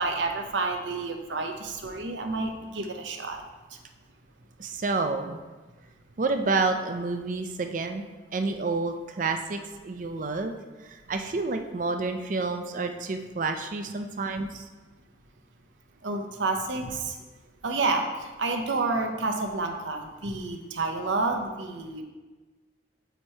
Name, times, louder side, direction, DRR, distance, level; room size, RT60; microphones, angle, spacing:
voice 1, 0.0-3.4 16.0-17.2 17.6-22.0, right 3 dB, 75° right, 4 dB, 0.7 m, -29 dB
voice 2, 4.6-5.4 6.2-8.1 8.3-14.7, right 3 dB, 45° right, 6 dB, 0.5 m, -29 dB
8.1 x 3.0 x 4.3 m, 1.2 s
head